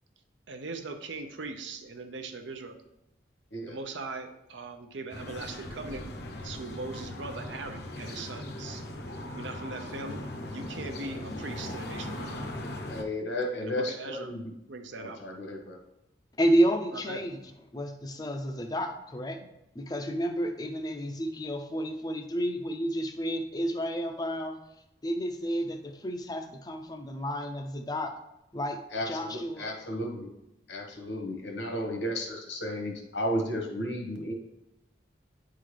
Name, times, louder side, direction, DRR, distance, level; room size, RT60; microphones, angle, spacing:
voice 1, 0.5-2.8 3.7-6.1 6.4-8.8 9.4-10.3 10.5-12.4 13.6-14.4 14.7-15.2 16.9-17.2, right 3 dB, 80° right, 6 dB, 0.7 m, -40 dB
sound 1, 5.1-13.0, left 1 dB, 55° left, 0.7 m, -39 dB
voice 2, 12.9-14.4 15.0-15.8 28.9-29.3 29.6-30.3 30.7-34.3, equal, 75° left, 1 dB, 1.2 m, -33 dB
voice 3, 16.4-17.4 17.7-19.4 19.8-24.6 25.0-28.1 28.5-28.8 29.0-29.8, equal, 20° left, 6 dB, 0.5 m, -30 dB
9.4 x 3.8 x 3.3 m, 0.88 s
head